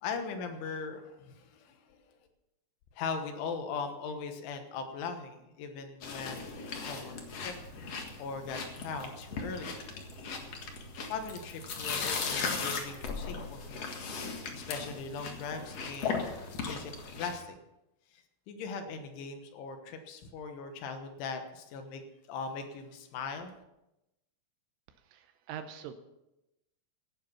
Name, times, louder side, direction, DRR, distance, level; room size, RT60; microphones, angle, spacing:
voice 1, 0.0-2.0 3.0-7.6 7.9-9.7 11.0-13.8 14.3-16.3 16.6-17.6 18.1-22.0 22.3-23.5, left 5 dB, 70° left, 6 dB, 3.5 m, -40 dB
sound 1, 6.0-17.4, left 4 dB, 90° left, 1.4 m, -38 dB
voice 2, 25.1-25.9, right 9 dB, 80° right, 9 dB, 3.1 m, -43 dB
16.5 x 9.5 x 5.8 m, 0.92 s
omnidirectional pair, 6.0 m